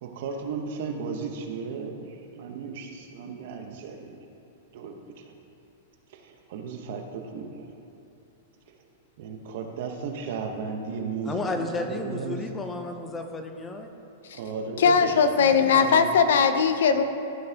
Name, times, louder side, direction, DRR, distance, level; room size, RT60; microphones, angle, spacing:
voice 1, 0.0-4.1 4.7-5.0 5.2-5.3 6.1-7.7 9.2-12.5 14.3-15.1 15.4-16.0, right 5 dB, 50° right, 4 dB, 0.9 m, -35 dB
voice 2, 11.2-13.9, left 2 dB, 10° left, 5 dB, 0.5 m, -32 dB
voice 3, 14.8-17.0, left 6 dB, 80° left, 9 dB, 0.6 m, -20 dB
14.5 x 5.5 x 2.8 m, 2.7 s
supercardioid pair, 165°, 0 cm